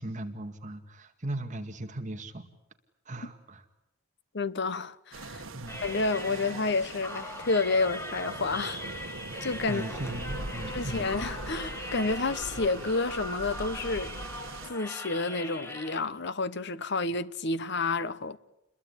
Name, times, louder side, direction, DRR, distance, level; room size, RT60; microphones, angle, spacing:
voice 1, 0.0-2.5 3.1-3.6 5.5-5.8 9.7-11.1, right 1 dB, 35° right, 2.1 m, -38 dB
voice 2, 4.3-5.5 5.8-9.1 9.4-9.8 10.7-14.1 14.7-18.4, left 3 dB, 55° left, 1.0 m, -30 dB
sound 1, 5.1-14.7, right 2 dB, 75° right, 1.6 m, -41 dB
sound 2, 5.7-16.0, left 1 dB, 15° left, 2.1 m, -41 dB
29.0 x 22.0 x 8.6 m
head